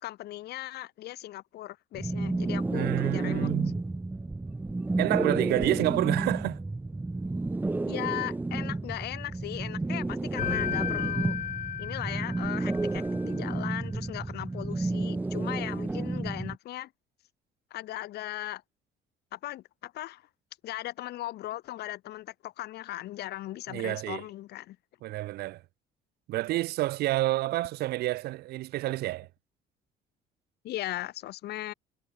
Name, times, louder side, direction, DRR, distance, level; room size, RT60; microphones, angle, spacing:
voice 1, 0.0-3.5 7.9-11.4 11.8-16.9 17.7-18.6 19.3-20.2 20.6-24.8 30.6-31.7, left 15 dB, 75° left, 3.1 m, -38 dB
sound 1, 1.9-16.6, right 2 dB, 10° right, 0.7 m, -31 dB
voice 2, 2.7-3.8 5.0-6.6 23.7-24.2 25.0-25.6 26.3-29.3, right 17 dB, 70° right, 0.6 m, -29 dB
sound 2, 10.4-13.2, left 10 dB, 50° left, 1.0 m, -34 dB
cardioid pair, 110°, 17 cm